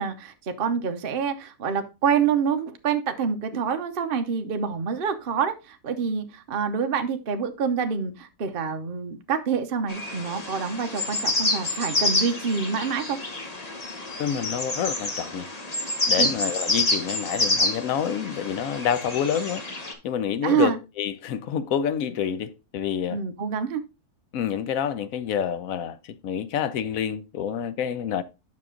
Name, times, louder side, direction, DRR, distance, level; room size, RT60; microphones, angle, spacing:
voice 1, 0.0-13.2 16.2-16.3 20.4-20.8 23.1-23.8, right 6 dB, 45° right, 0.8 m, -27 dB
sound 1, 9.9-19.9, left 2 dB, 25° left, 1.2 m, -28 dB
voice 2, 14.2-15.5 16.1-19.6 20.0-23.2 24.3-28.2, left 8 dB, 70° left, 1.1 m, -28 dB
7.5 x 6.0 x 3.7 m
omnidirectional pair, 1.6 m